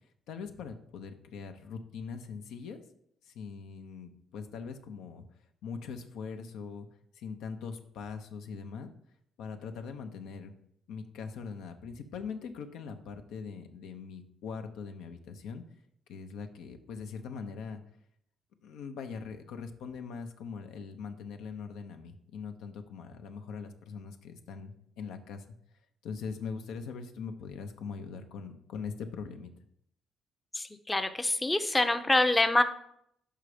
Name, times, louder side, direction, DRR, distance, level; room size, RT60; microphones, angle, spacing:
voice 1, 0.3-2.8 3.3-5.2 5.6-6.9 7.2-8.9 9.4-10.5 10.9-15.6 16.1-17.8 18.6-25.4 26.0-29.5, left 5 dB, 90° left, 6 dB, 0.7 m, -41 dB
voice 2, 30.5-32.6, left 2 dB, 15° left, 8 dB, 0.5 m, -26 dB
5.6 x 5.1 x 4.9 m, 0.71 s
cardioid pair, 90°, 0 cm